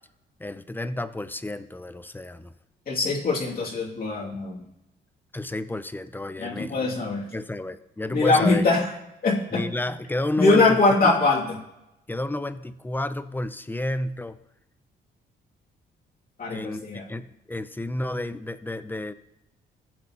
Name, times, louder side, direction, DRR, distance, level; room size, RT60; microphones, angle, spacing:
voice 1, 0.4-2.5 5.3-6.9 7.3-8.6 9.5-10.8 11.0-11.1 12.1-14.4 16.5-19.1, left 1 dB, 10° left, 13 dB, 0.5 m, -31 dB
voice 2, 2.9-4.6 6.4-7.2 8.1-8.9 9.2-9.6 10.4-11.6 16.4-17.0, left 3 dB, 50° left, -2 dB, 2.6 m, -22 dB
16.0 x 7.4 x 3.0 m, 0.90 s
cardioid pair, 90°, 20 cm